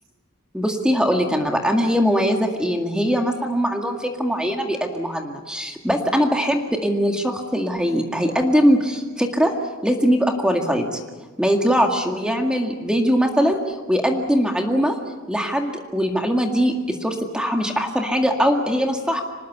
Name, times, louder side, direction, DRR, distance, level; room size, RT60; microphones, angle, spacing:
voice 1, 0.5-9.5 9.8-11.0 11.4-15.0 15.3-19.2, equal, 5° right, 2 dB, 2.0 m, -21 dB
26.0 x 19.5 x 8.2 m, 1.3 s
head